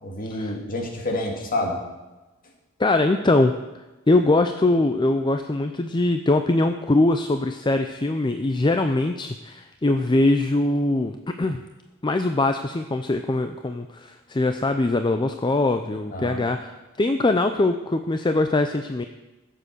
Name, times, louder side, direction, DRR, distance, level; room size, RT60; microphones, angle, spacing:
voice 1, 0.0-1.8 16.1-16.4, left 1 dB, 40° left, 2 dB, 2.2 m, -28 dB
voice 2, 2.8-3.5 4.1-11.6 12.0-19.0, left 2 dB, 20° left, 7 dB, 0.5 m, -22 dB
15.0 x 7.6 x 6.6 m, 1.1 s
head